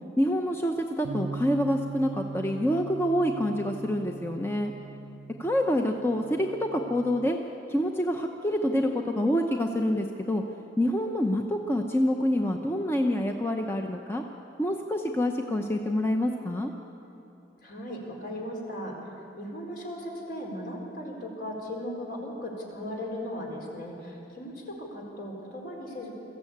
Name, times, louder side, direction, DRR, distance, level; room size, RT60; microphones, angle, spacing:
voice 1, 0.2-4.7 5.4-7.4 7.7-10.4 10.8-14.2 14.6-16.7, equal, 15° left, 3 dB, 0.8 m, -27 dB
Bass guitar, 1.0-7.3, right 4 dB, 85° right, 0.6 m, -40 dB
voice 2, 17.6-26.1, equal, 55° left, -1 dB, 4.5 m, -37 dB
22.0 x 14.5 x 8.7 m, 2.9 s
head